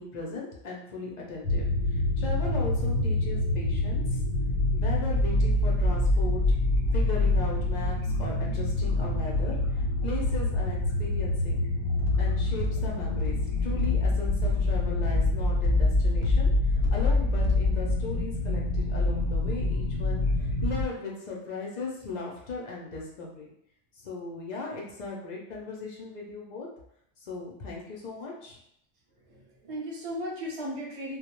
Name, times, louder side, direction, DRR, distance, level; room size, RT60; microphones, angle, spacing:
voice 1, 0.0-4.2 4.7-6.4 6.9-11.6 12.2-23.5 24.0-26.7 27.2-28.6, left 3 dB, 60° left, -2 dB, 0.4 m, -38 dB
sound 1, 1.4-20.9, left 1 dB, 90° left, 1.0 m, -26 dB
sound 2, 11.9-18.0, left 4 dB, 65° right, 0.8 m, -29 dB
voice 2, 29.1-31.2, equal, 40° right, -3 dB, 0.5 m, -36 dB
2.2 x 2.0 x 2.9 m, 0.73 s
omnidirectional pair, 1.3 m